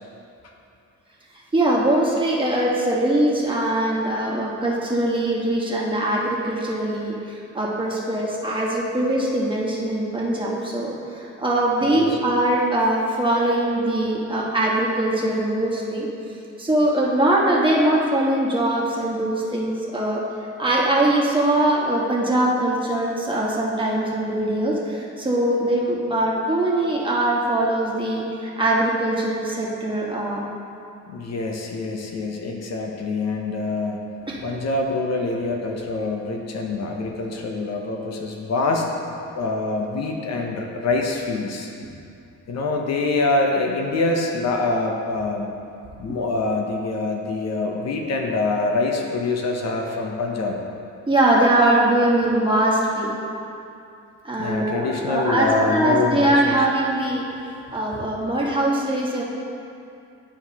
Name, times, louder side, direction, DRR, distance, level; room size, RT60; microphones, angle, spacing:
voice 1, 1.5-16.1 16.6-20.2 20.6-30.4 34.3-34.5 51.1-53.1 54.2-57.2 57.7-59.2, right 1 dB, 15° right, -4 dB, 1.4 m, -22 dB
voice 2, 11.8-12.2 31.1-34.1 34.4-41.7 42.5-45.5 46.0-50.6 54.4-56.5, left 3 dB, 60° left, 1 dB, 0.8 m, -25 dB
11.0 x 4.7 x 2.9 m, 2.6 s
cardioid pair, 90°, 30 cm